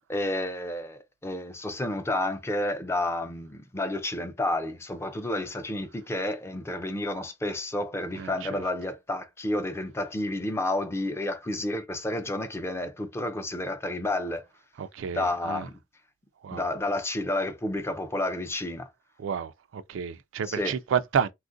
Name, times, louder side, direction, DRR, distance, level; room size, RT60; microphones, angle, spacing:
voice 1, 0.1-14.5 15.1-15.7 16.5-18.9 20.5-20.8, left 1 dB, 15° left, 0.4 m, -30 dB
voice 2, 8.2-8.6 14.8-15.7 16.4-16.7 19.2-21.3, right 7 dB, 90° right, 0.4 m, -30 dB
3.5 x 2.4 x 2.5 m
head